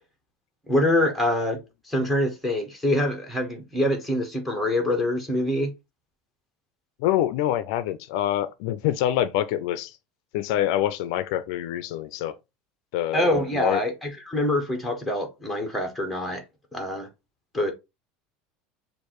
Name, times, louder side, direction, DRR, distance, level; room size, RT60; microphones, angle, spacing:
voice 1, 0.7-1.6 1.9-5.7 13.1-16.4 16.7-17.1 17.5-17.7, left 1 dB, ahead, 1.0 m, -25 dB
voice 2, 7.0-10.0 10.3-12.4 12.9-13.8, left 12 dB, 60° left, 0.4 m, -26 dB
6.5 x 2.5 x 3.0 m
cardioid pair, 175°, 3 cm